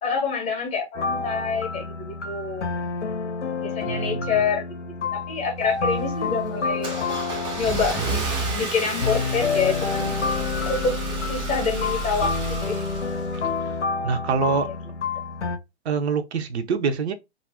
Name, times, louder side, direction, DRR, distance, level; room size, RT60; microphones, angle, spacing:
voice 1, 0.0-2.7 3.6-4.6 5.1-7.0 7.6-8.0 8.5-10.1 10.6-12.8, left 5 dB, 20° left, 0.7 m, -27 dB
sound 1, 1.0-15.6, left 4 dB, 90° left, 0.7 m, -29 dB
voice 2, 3.9-4.4 14.0-14.7 15.8-17.1, right 5 dB, 70° right, 0.6 m, -25 dB
Car / Engine starting, 5.6-13.7, right 3 dB, 15° right, 0.5 m, -31 dB
2.5 x 2.1 x 3.4 m
figure-of-eight pair, 115°, 34 cm